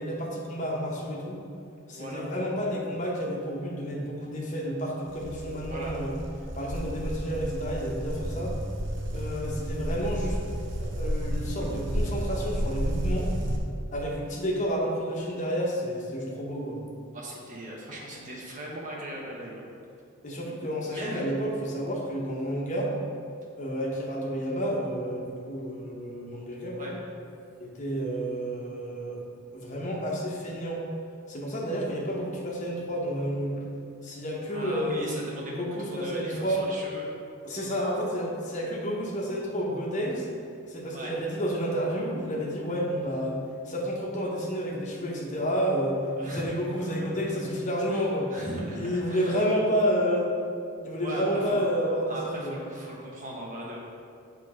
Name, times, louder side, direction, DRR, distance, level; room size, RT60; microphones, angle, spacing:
voice 1, 0.0-1.4 1.9-6.1 6.5-8.5 9.1-10.4 10.8-13.3 13.9-16.8 20.2-22.9 23.6-26.9 27.6-29.2 29.5-30.8 31.3-33.7 34.0-35.1 35.5-36.7 37.4-40.3 40.7-43.4 43.6-48.3 48.7-50.3 50.8-52.5, equal, 35° left, -3 dB, 0.9 m, -30 dB
voice 2, 1.9-2.3 5.6-5.9 11.5-11.8 17.1-19.6 20.9-21.3 26.8-26.9 34.5-35.6 35.8-37.0 40.9-41.1 46.2-46.4 46.8-47.1 47.9-49.3 51.0-51.6 52.1-53.8, right 1 dB, 35° right, -3 dB, 1.0 m, -38 dB
sound 1, 5.1-13.6, equal, 55° right, 0.7 m, -32 dB
6.7 x 3.3 x 4.9 m, 2.4 s
head